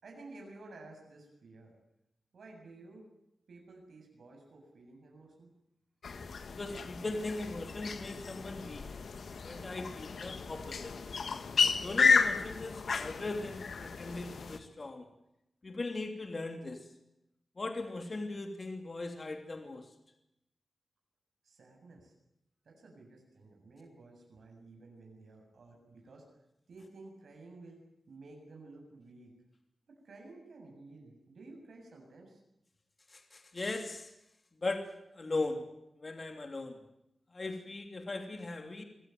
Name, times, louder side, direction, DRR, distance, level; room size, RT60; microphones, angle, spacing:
voice 1, 0.0-1.7 2.3-3.1 3.5-5.5 21.4-22.1 22.6-26.3 26.7-27.8 28.1-29.4 29.9-32.4, right 2 dB, 75° right, 1 dB, 7.5 m, -53 dB
sound 1, 6.0-14.6, left 5 dB, 70° left, 1.6 m, -32 dB
voice 2, 6.5-8.9 9.4-10.9 11.6-15.1 15.6-16.8 17.6-19.9 33.1-34.1 34.6-34.8 35.1-35.6 36.0-36.7 37.3-38.8, left 2 dB, 35° left, 4 dB, 3.0 m, -39 dB
26.0 x 17.5 x 9.3 m, 0.85 s
wide cardioid pair, 120°, 0 cm